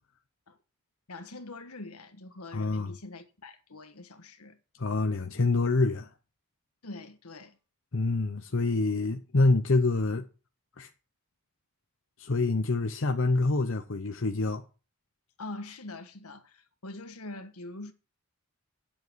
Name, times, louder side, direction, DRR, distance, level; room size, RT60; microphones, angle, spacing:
voice 1, 1.1-4.6 6.8-7.6 15.4-17.9, left 2 dB, 80° left, 1.5 m, -43 dB
voice 2, 2.5-3.0 4.8-6.1 7.9-10.2 10.8-10.9 12.2-14.6, left 3 dB, 60° left, 0.8 m, -26 dB
9.5 x 7.8 x 6.2 m
head